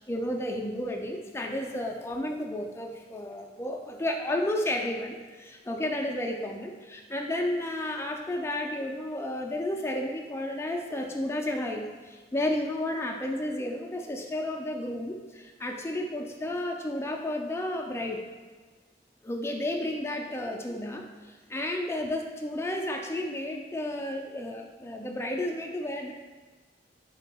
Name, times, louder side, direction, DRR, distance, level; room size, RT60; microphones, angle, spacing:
voice 1, 0.0-18.2 19.2-26.1, left 1 dB, 15° left, 1 dB, 0.3 m, -32 dB
7.8 x 2.7 x 2.2 m, 1.4 s
head